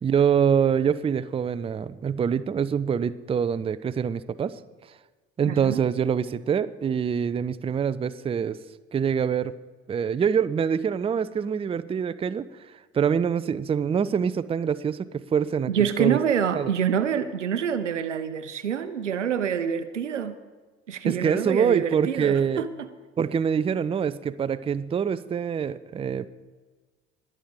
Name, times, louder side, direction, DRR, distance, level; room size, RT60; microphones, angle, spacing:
voice 1, 0.0-4.6 5.4-8.6 8.9-9.5 9.9-16.2 16.5-16.7 21.0-22.6 23.2-26.3, right 7 dB, 15° right, 15 dB, 0.5 m, -25 dB
voice 2, 5.4-5.8 15.7-20.4 20.9-22.9, right 8 dB, 85° right, 13 dB, 0.7 m, -26 dB
21.5 x 7.6 x 5.0 m, 1.4 s
figure-of-eight pair, 55°, 35 cm